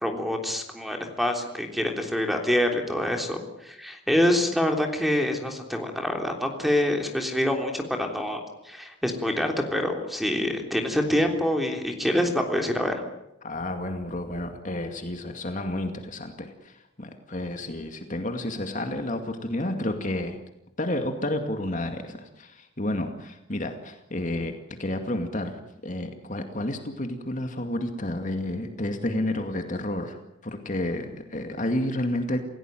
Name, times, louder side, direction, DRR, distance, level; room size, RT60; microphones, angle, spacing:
voice 1, 0.0-12.9, left 1 dB, ahead, 3 dB, 3.5 m, -26 dB
voice 2, 13.4-20.4 20.8-32.4, left 1 dB, 40° left, 5 dB, 2.3 m, -31 dB
28.0 x 17.0 x 9.2 m, 0.88 s
head